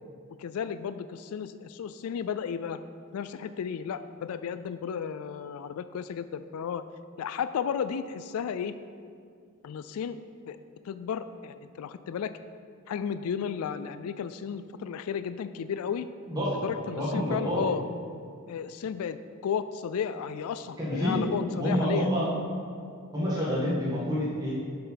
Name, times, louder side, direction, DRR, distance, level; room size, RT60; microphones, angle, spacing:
voice 1, 0.4-2.8 3.1-6.8 7.2-8.8 9.6-10.2 10.5-10.6 10.8-12.3 12.9-16.1 16.6-17.8 18.5-22.1 23.3-23.8, left 7 dB, 80° left, 12 dB, 0.3 m, -33 dB
voice 2, 16.9-17.6 20.8-21.2 21.5-22.3 23.1-24.6, equal, 15° right, -7 dB, 1.8 m, -28 dB
7.6 x 5.7 x 5.8 m, 2.3 s
head